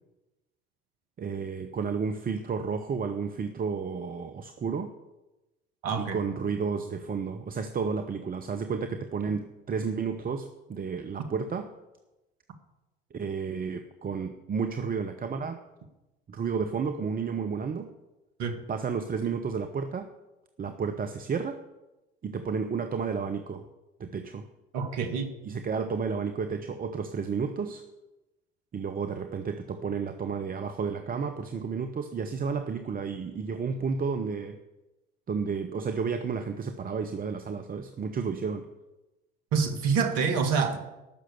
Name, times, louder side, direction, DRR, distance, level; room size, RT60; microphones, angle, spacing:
voice 1, 1.2-4.9 6.0-11.7 13.1-15.6 16.3-17.9 18.7-20.1 20.6-21.6 22.2-23.7 24.0-24.4 25.4-27.8 28.7-34.6 35.3-38.6, right 5 dB, 30° right, 8 dB, 0.9 m, -32 dB
voice 2, 5.8-6.2 18.4-18.6 24.7-25.3 39.5-40.8, right 5 dB, 60° right, 7 dB, 1.8 m, -26 dB
12.0 x 6.5 x 8.0 m, 1.0 s
hypercardioid pair, 65°, 29 cm